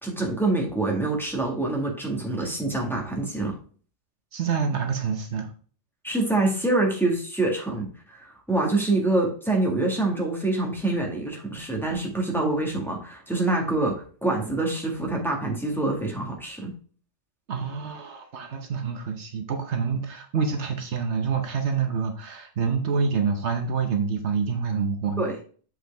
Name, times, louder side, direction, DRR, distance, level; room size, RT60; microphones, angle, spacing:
voice 1, 0.0-3.6 6.0-16.7 25.2-25.4, right 2 dB, ahead, -1 dB, 1.8 m, -26 dB
voice 2, 4.3-5.5 17.5-25.3, right 5 dB, 70° right, 5 dB, 1.2 m, -27 dB
7.8 x 4.7 x 3.4 m, 0.43 s
omnidirectional pair, 1.2 m